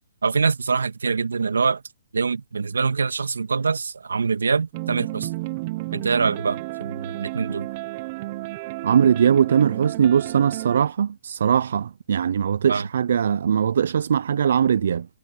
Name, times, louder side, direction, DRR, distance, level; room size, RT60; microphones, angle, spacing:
voice 1, 0.2-1.8 2.1-5.3 5.9-7.7 12.7-12.9, right 5 dB, 80° right, 2.1 m, -24 dB
sound 1, 4.7-10.8, right 20 dB, 35° right, 0.9 m, -32 dB
voice 2, 8.8-15.1, right 8 dB, 60° right, 0.6 m, -20 dB
hypercardioid pair, 145°, 0 cm